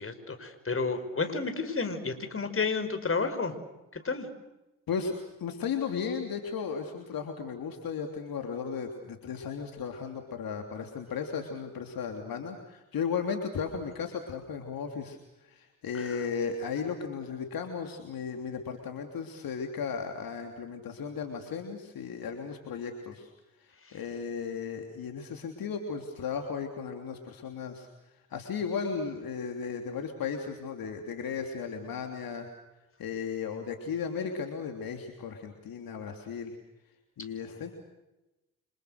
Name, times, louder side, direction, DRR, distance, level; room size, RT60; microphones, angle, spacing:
voice 1, 0.0-3.5 3.9-4.3 15.9-16.3 23.8-24.0 37.5-37.6, left 4 dB, 30° left, 8 dB, 5.7 m, -31 dB
voice 2, 4.9-23.3 23.6-27.9 28.3-32.5 33.0-36.6 37.2-37.7, left 6 dB, 55° left, 4 dB, 3.4 m, -35 dB
29.0 x 26.5 x 6.6 m, 1.0 s
hypercardioid pair, 50°, 41 cm